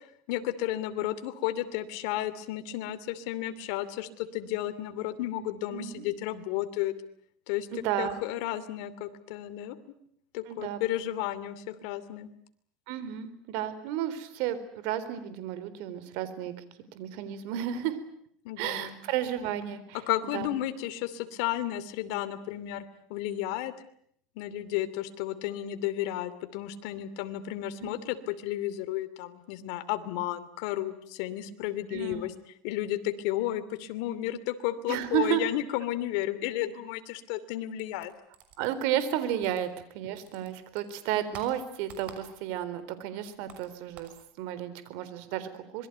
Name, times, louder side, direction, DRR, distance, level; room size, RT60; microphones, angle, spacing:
voice 1, 0.3-6.9 7.5-7.7 8.0-9.8 10.3-12.3 18.4-19.0 19.9-22.8 23.1-23.7 24.4-32.3 32.6-38.1, left 13 dB, 70° left, 11 dB, 2.7 m, -33 dB
voice 2, 5.7-6.1 7.7-8.2 10.5-10.8 12.9-16.5 16.9-18.0 18.6-20.0 20.3-20.5 27.8-27.9 31.9-32.2 34.9-35.4 38.6-39.7 39.9-44.1 44.4-45.9, right 11 dB, 65° right, 13 dB, 4.0 m, -32 dB
sound 1, 37.8-39.9 40.2-42.7 42.9-44.2, right 7 dB, 45° right, 6.1 m, -51 dB
26.0 x 22.0 x 9.3 m, 0.68 s
supercardioid pair, 135°, 3 cm